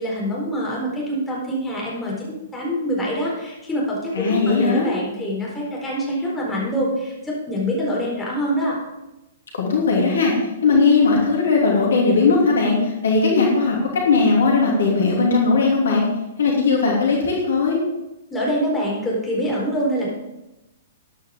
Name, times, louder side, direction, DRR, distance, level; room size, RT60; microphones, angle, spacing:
voice 1, 0.0-8.8 18.3-20.1, equal, 10° left, -5 dB, 4.4 m, -25 dB
voice 2, 4.1-4.9 9.6-10.3 10.6-16.0 16.4-17.8, left 4 dB, 60° left, -1 dB, 2.8 m, -18 dB
13.5 x 10.5 x 3.8 m, 0.96 s
figure-of-eight pair, 115°, 0 cm